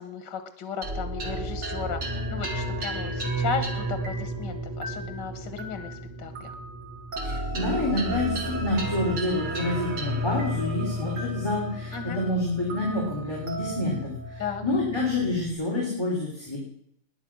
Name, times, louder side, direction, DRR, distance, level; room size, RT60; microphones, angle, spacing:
voice 1, 0.0-2.0 2.3-6.5 11.9-12.2 14.4-14.6, left 6 dB, 85° left, 9 dB, 2.0 m, -35 dB
sound 1, 0.8-15.5, right 1 dB, 80° right, 3.3 m, -32 dB
voice 2, 7.2-16.6, left 2 dB, 15° left, -4 dB, 3.8 m, -28 dB
19.5 x 10.5 x 6.2 m, 0.71 s
omnidirectional pair, 1.9 m